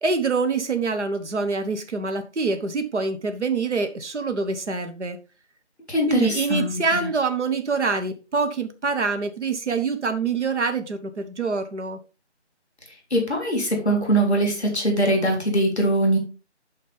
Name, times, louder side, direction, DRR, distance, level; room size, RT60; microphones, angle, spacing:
voice 1, 0.0-5.2 6.1-12.0, right 4 dB, 75° right, 7 dB, 1.1 m, -25 dB
voice 2, 5.9-7.1 13.1-16.2, right 1 dB, ahead, -1 dB, 2.4 m, -22 dB
11.5 x 4.2 x 3.4 m, 0.32 s
figure-of-eight pair, 175°, 35 cm